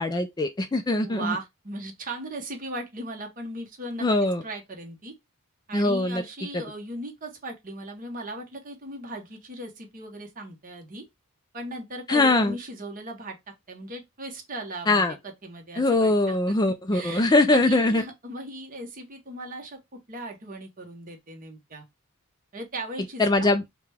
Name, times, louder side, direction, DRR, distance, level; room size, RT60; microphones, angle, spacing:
voice 1, 0.0-1.3 4.0-4.4 5.7-6.2 12.1-12.6 14.9-15.1 15.8-18.0 23.2-23.6, left 2 dB, 20° left, 0.4 m, -22 dB
voice 2, 0.9-4.1 4.4-5.2 5.7-11.1 11.5-13.4 13.7-16.5 16.9-21.8 22.5-23.5, right 1 dB, 40° right, 1.1 m, -38 dB
4.7 x 2.3 x 3.4 m
head